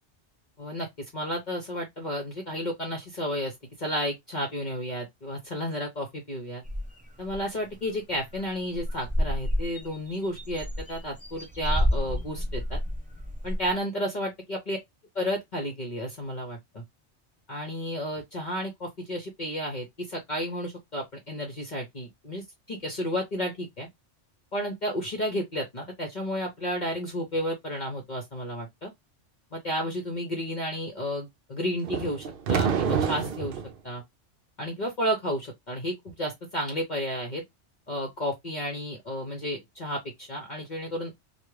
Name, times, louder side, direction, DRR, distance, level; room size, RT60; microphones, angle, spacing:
voice 1, 0.6-6.6 7.2-12.8 13.4-14.8 15.1-16.8 17.5-23.9 24.5-28.9 29.5-34.0 34.6-37.4 37.9-41.2, equal, 40° left, 1.0 m, -32 dB
sound 1, 6.6-7.4 7.8-7.9 8.2-8.5 8.7-13.7, equal, 10° right, 0.6 m, -30 dB
sound 2, 31.8-33.7, right 6 dB, 60° right, 0.6 m, -27 dB
3.4 x 2.5 x 3.1 m
omnidirectional pair, 1.2 m